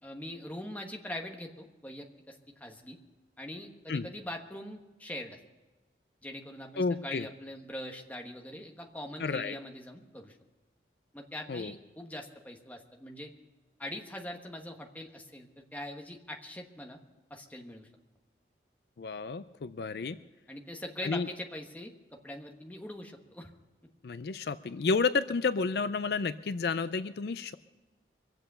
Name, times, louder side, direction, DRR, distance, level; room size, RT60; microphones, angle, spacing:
voice 1, 0.0-3.0 3.4-5.4 6.2-10.4 11.1-13.3 13.8-17.0 17.3-17.9 20.5-23.5, left 1 dB, 10° left, 2 dB, 1.2 m, -42 dB
voice 2, 6.8-7.3 9.2-9.6 11.5-11.7 19.0-20.2 21.0-21.3 24.0-27.5, left 4 dB, 65° left, 13 dB, 0.4 m, -31 dB
23.5 x 7.9 x 6.8 m, 1.2 s
head